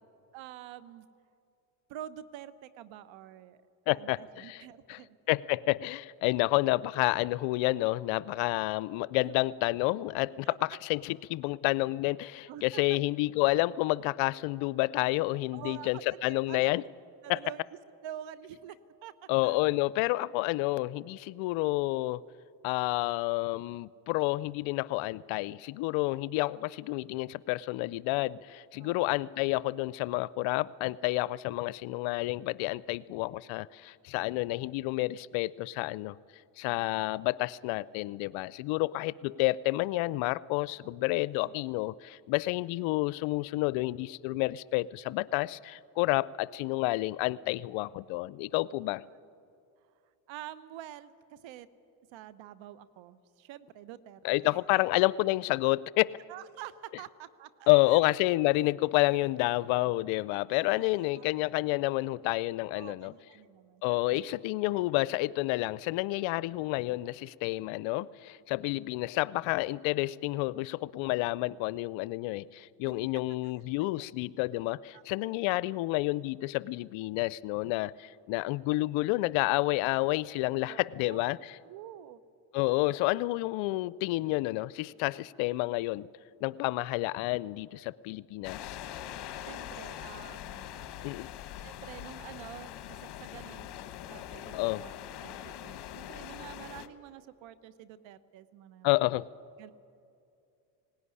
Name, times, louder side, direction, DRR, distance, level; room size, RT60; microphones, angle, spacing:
voice 1, 0.3-1.1 1.9-3.6 3.9-5.2 9.2-9.3 10.4-10.6 12.5-13.0 15.5-16.7 17.2-17.6 18.0-18.8 19.0-19.1 19.4-19.6 26.1-26.2 28.8-29.2 36.7-37.0 40.8-40.9 41.4-41.5 49.0-49.1 50.3-51.7 52.1-54.8 56.3-58.0 60.5-61.2 62.7-64.3 64.7-64.8 68.6-68.7 72.8-72.9 74.0-74.1 74.9-75.0 80.6-81.4 81.6-82.2 89.5-90.8 91.6-93.7 94.1-94.9 95.2-98.9 99.6-99.7, right 12 dB, 65° right, 17 dB, 1.1 m, -47 dB
voice 2, 3.9-4.6 4.9-5.0 5.3-16.8 17.3-17.4 19.3-22.2 22.6-36.2 36.6-49.0 54.2-56.1 57.7-63.1 63.8-81.6 82.5-86.1 86.4-88.8 91.0-91.3 94.5-94.8 98.8-99.3, left 20 dB, 70° left, 21 dB, 0.6 m, -29 dB
sound 1, 88.4-96.9, left 11 dB, 55° left, 1.2 m, -43 dB
18.5 x 17.5 x 9.8 m, 2.5 s
supercardioid pair, 85°, 49 cm